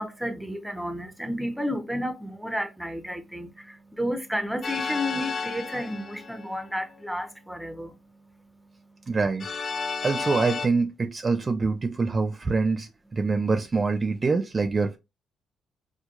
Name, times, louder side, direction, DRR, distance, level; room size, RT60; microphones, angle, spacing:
voice 1, 0.0-9.2 9.8-10.0, equal, ahead, 0.7 m, -32 dB
sound 1, 4.6-6.7 9.4-10.7, left 5 dB, 50° left, 0.4 m, -32 dB
voice 2, 9.1-9.5 10.0-15.0, right 4 dB, 30° right, 0.3 m, -25 dB
4.3 x 2.2 x 2.3 m
cardioid pair, 90°, 0 cm